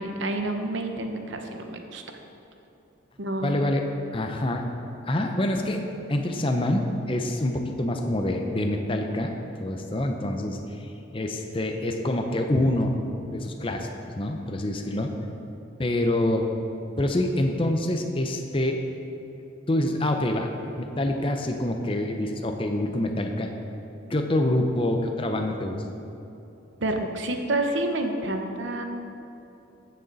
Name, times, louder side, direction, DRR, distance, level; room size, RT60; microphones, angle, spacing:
voice 1, 0.0-2.0 3.2-3.6 26.8-28.9, right 1 dB, 65° right, 4 dB, 0.9 m, -29 dB
voice 2, 3.4-3.8 4.1-4.7 5.0-5.8 6.1-13.0 13.3-15.1 15.8-16.5 17.0-18.8 19.7-20.5 20.8-23.5 24.1-25.8, left 1 dB, 25° left, 4 dB, 0.6 m, -26 dB
14.5 x 6.5 x 4.0 m, 2.9 s
head